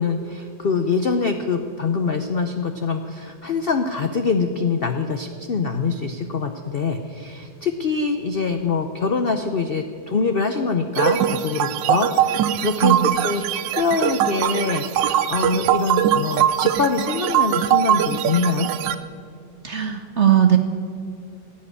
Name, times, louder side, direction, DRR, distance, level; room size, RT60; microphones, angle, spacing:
voice 1, 0.0-13.0 13.2-13.4 13.8-18.7, left 4 dB, 70° left, 7 dB, 0.5 m, -24 dB
sound 1, 11.0-18.9, right 10 dB, 85° right, 1.4 m, -21 dB
voice 2, 12.8-13.1 19.6-20.6, right 10 dB, 60° right, 7 dB, 0.8 m, -18 dB
16.0 x 7.6 x 9.9 m, 2.2 s
omnidirectional pair, 2.0 m